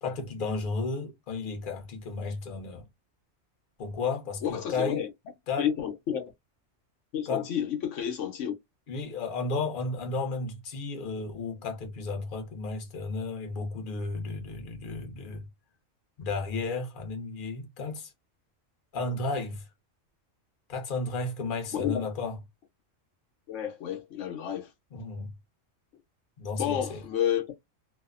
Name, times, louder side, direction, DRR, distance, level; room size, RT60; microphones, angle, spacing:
voice 1, 0.0-2.9 3.8-5.0 5.5-5.7 7.3-7.4 8.9-15.5 16.2-18.1 18.9-19.7 20.7-22.4 24.9-25.3 26.4-27.0, left 3 dB, 50° left, 0.9 m, -33 dB
voice 2, 4.4-5.1 5.6-6.3 7.1-8.5 21.7-22.0 23.5-24.7 26.6-27.5, left 9 dB, 80° left, 1.0 m, -30 dB
2.7 x 2.0 x 2.4 m
omnidirectional pair, 1.3 m